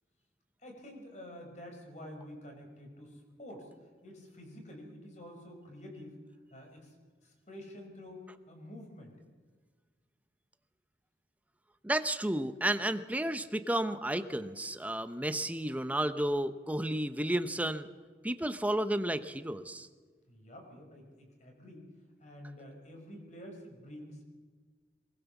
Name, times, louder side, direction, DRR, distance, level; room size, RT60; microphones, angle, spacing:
voice 1, 0.6-3.7 4.0-6.2 6.5-7.0 7.2-9.1 20.3-21.9 22.2-24.3, left 1 dB, 40° left, 2 dB, 5.2 m, -49 dB
voice 2, 11.8-17.9 18.2-19.9, right 1 dB, 10° right, 10 dB, 0.8 m, -32 dB
23.0 x 20.0 x 7.2 m, 1.5 s
head